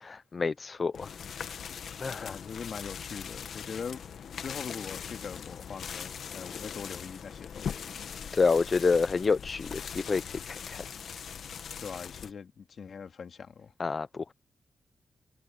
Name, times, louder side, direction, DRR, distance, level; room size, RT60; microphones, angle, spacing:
voice 1, 0.0-1.1 1.4-1.5 2.0-2.3 8.3-10.8 13.8-14.1, left 4 dB, 45° left, 0.6 m, -28 dB
sound 1, 0.9-12.3, left 7 dB, 80° left, 1.3 m, -40 dB
voice 2, 2.2-7.9 11.8-13.7, left 6 dB, 65° left, 2.4 m, -42 dB
cardioid pair, 95°, 0 cm